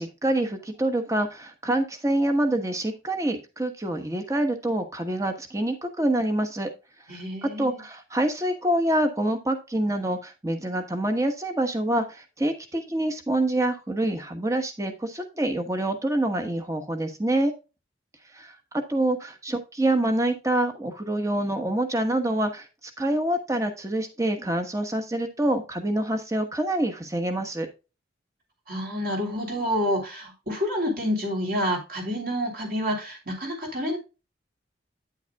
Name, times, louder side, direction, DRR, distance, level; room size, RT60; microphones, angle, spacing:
voice 1, 0.0-6.7 7.4-17.5 18.3-27.7, right 1 dB, 15° right, 6 dB, 1.1 m, -26 dB
voice 2, 7.1-7.8 28.7-34.0, equal, 50° right, 1 dB, 3.4 m, -28 dB
9.3 x 8.1 x 2.3 m, 0.29 s
head